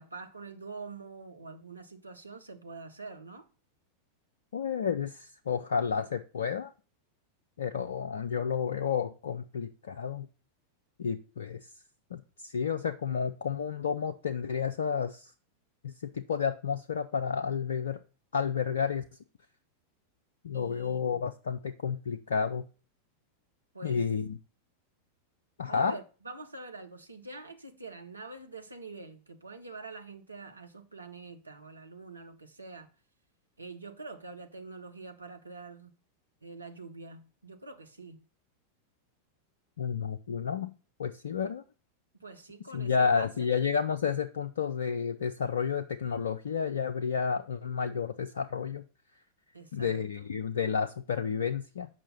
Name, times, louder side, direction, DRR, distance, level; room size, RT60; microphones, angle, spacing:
voice 1, 0.0-3.5 20.5-21.2 23.7-24.0 25.8-32.9 33.6-36.0 36.4-38.2 42.2-43.5 49.5-50.3, right 3 dB, 80° right, 0.9 m, -45 dB
voice 2, 4.5-6.7 7.6-10.3 11.0-11.7 12.1-15.3 15.8-18.0 18.3-19.0 20.4-22.6 23.8-24.4 25.6-26.0 39.8-40.7 41.0-41.6 42.7-48.8 49.7-51.9, left 6 dB, 65° left, 0.4 m, -31 dB
7.4 x 5.6 x 5.4 m
figure-of-eight pair, 90°, 0 cm